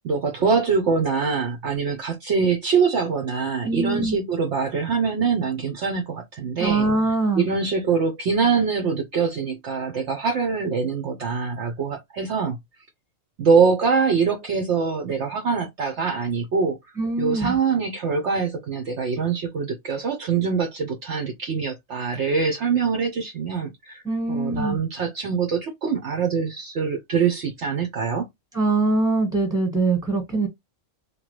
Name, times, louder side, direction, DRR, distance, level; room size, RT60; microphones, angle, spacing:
voice 1, 0.0-6.9 7.4-12.6 13.4-16.8 17.2-24.0 24.3-28.3, right 5 dB, 60° right, 0.9 m, -24 dB
voice 2, 3.6-4.2 6.6-7.5 17.0-17.6 24.0-24.8 28.5-30.5, right 3 dB, 5° right, 1.2 m, -23 dB
2.9 x 2.3 x 3.0 m
omnidirectional pair, 1.5 m